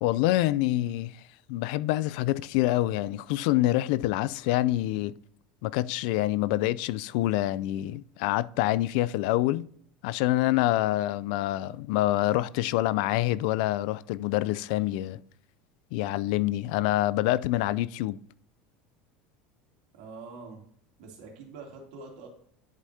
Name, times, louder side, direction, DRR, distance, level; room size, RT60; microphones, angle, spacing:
voice 1, 0.0-1.2 1.5-5.1 5.6-9.7 10.0-15.2 15.9-18.2, left 16 dB, 70° left, 0.3 m, -26 dB
voice 2, 19.9-20.7 21.0-22.3, right 4 dB, 75° right, 2.7 m, -45 dB
11.0 x 4.9 x 2.7 m
supercardioid pair, 120°, 5 cm